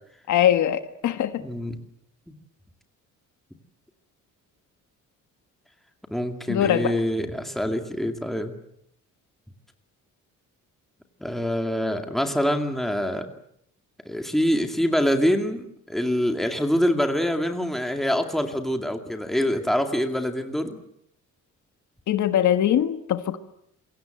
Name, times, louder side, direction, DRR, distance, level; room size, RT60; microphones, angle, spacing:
voice 1, 0.3-1.4 6.5-6.9 22.1-23.4, left 10 dB, 65° left, 9 dB, 1.6 m, -22 dB
voice 2, 1.4-1.8 6.1-8.5 11.2-13.3 14.1-20.8, equal, ahead, 5 dB, 2.3 m, -25 dB
27.5 x 23.5 x 7.8 m, 0.72 s
cardioid pair, 170°, 31 cm